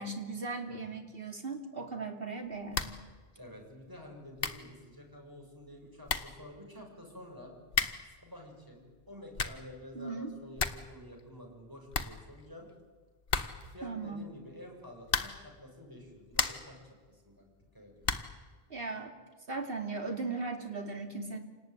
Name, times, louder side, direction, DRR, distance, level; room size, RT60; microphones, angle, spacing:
voice 1, 0.0-2.9 9.9-10.3 13.8-14.2 18.7-19.1 19.5-21.4, right 3 dB, 65° right, 4 dB, 3.2 m, -38 dB
voice 2, 0.7-1.0 3.4-7.5 8.1-12.7 13.7-17.5 17.7-18.2, left 1 dB, 20° right, 1 dB, 6.9 m, -50 dB
sound 1, 2.7-3.1 3.4-3.5 4.1-4.2 4.4-4.7 5.7-5.8 6.0-6.4 7.7-8.1 9.1-9.7 10.1-10.2 10.4-10.9 11.2-11.3 11.6-11.7 11.9-12.7 13.3-13.8 15.0-15.5 16.0-16.8 18.0-18.4, left 5 dB, 65° left, 1.5 m, -34 dB
28.0 x 19.0 x 9.8 m, 1.5 s
omnidirectional pair, 1.0 m